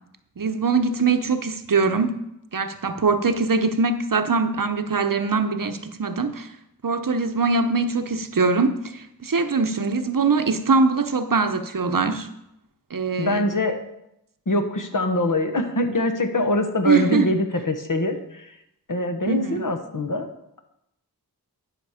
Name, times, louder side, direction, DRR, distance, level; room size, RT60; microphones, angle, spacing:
voice 1, 0.4-2.2 2.5-6.5 6.8-12.3 12.9-13.4 16.8-17.3 19.3-19.6, right 4 dB, 60° right, 9 dB, 0.8 m, -22 dB
voice 2, 13.2-13.8 14.5-18.6 18.9-20.3, left 1 dB, 55° left, 6 dB, 1.2 m, -24 dB
11.5 x 6.1 x 5.0 m, 0.82 s
wide cardioid pair, 50°, 38 cm